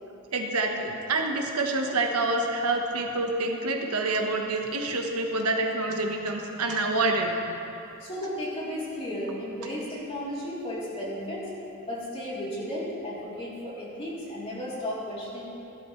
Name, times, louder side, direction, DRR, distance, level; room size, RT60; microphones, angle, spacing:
voice 1, 0.3-7.5, right 2 dB, 85° right, 2 dB, 1.2 m, -27 dB
voice 2, 8.0-11.5 11.9-15.5, left 1 dB, 25° left, -7 dB, 3.3 m, -34 dB
16.5 x 12.0 x 3.2 m, 2.7 s
head